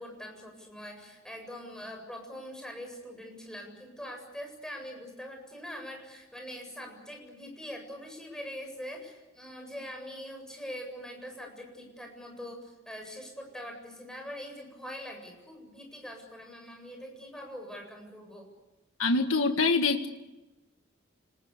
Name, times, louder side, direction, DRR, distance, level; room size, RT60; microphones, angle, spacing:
voice 1, 0.0-18.5, equal, 5° left, 2 dB, 8.0 m, -43 dB
voice 2, 19.0-20.1, left 3 dB, 85° left, 5 dB, 1.7 m, -25 dB
29.5 x 20.5 x 8.4 m, 1.0 s
head